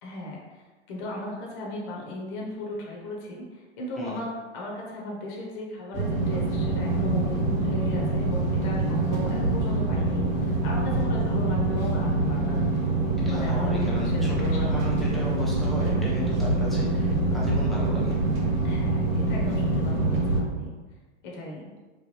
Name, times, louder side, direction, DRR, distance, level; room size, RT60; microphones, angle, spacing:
voice 1, 0.0-12.6 13.2-14.2 14.6-14.9 18.6-20.7 21.2-21.6, left 1 dB, 45° left, -3 dB, 0.8 m, -36 dB
voice 2, 4.0-4.3 13.2-18.1, left 1 dB, ahead, -6 dB, 0.6 m, -35 dB
sound 1, 5.9-20.4, right 2 dB, 40° right, 0.7 m, -25 dB
3.1 x 2.2 x 3.1 m, 1.3 s
hypercardioid pair, 115°, 34 cm